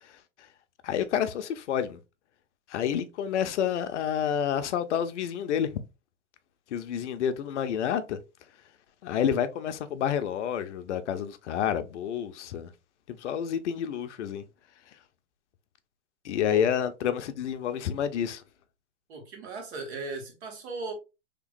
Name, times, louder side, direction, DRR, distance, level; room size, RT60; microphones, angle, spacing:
voice 1, 0.8-2.0 2.7-5.7 6.7-8.2 9.0-12.7 13.1-14.4 16.2-18.4, left 9 dB, 75° left, 0.6 m, -29 dB
voice 2, 19.1-20.9, right 3 dB, 60° right, 1.6 m, -37 dB
3.4 x 2.9 x 2.5 m
hypercardioid pair, 130°, 36 cm